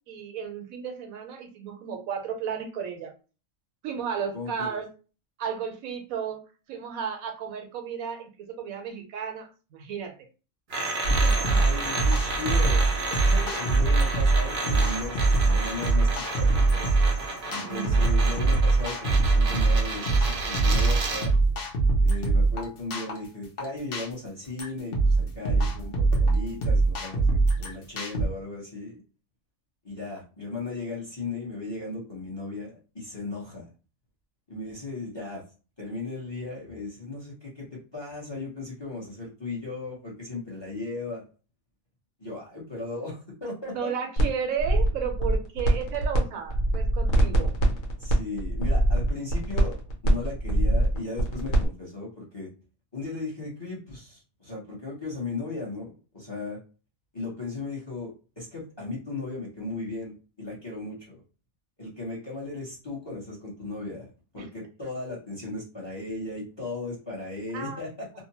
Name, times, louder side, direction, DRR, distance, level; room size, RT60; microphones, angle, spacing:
voice 1, 0.1-3.1 3.8-4.9 5.4-6.4 6.7-10.2 10.8-11.6 17.5-18.0 43.7-47.5 64.4-64.5 67.5-67.8, right 7 dB, 80° right, 5 dB, 1.0 m, -34 dB
voice 2, 4.3-4.8 11.4-12.8 13.2-16.9 17.5-21.4 22.0-29.0 29.8-33.7 34.5-35.4 35.8-41.3 42.2-43.9 48.0-49.8 50.0-52.5 52.9-56.6 57.1-61.2 61.8-68.1, left 2 dB, 25° left, -4 dB, 0.8 m, -36 dB
sound 1, 10.7-21.3, right 2 dB, 60° right, 0.5 m, -32 dB
sound 2, 11.0-28.3, right 3 dB, 50° left, 0.8 m, -23 dB
sound 3, 44.2-44.3 44.6-46.2 46.5-51.7, right 1 dB, 75° left, 1.2 m, -23 dB
2.7 x 2.1 x 2.8 m, 0.34 s
omnidirectional pair, 1.5 m